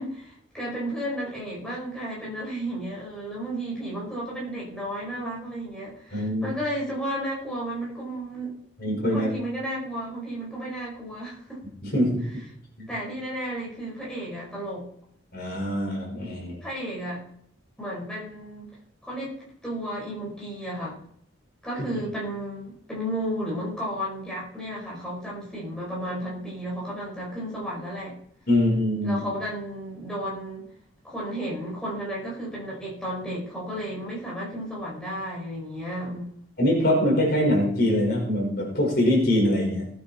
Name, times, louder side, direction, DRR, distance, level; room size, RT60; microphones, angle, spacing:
voice 1, 0.0-8.5 9.1-11.6 12.9-14.9 16.6-17.2 17.8-18.7 19.0-21.0 21.6-28.2 29.0-30.7 31.0-36.3, equal, 5° left, -6 dB, 5.2 m, -33 dB
voice 2, 6.1-6.6 8.8-9.3 11.8-12.4 12.8-12.9 15.3-16.6 28.5-29.2 36.6-39.9, left 1 dB, 50° left, -2 dB, 5.5 m, -23 dB
18.5 x 8.9 x 4.5 m, 0.67 s
head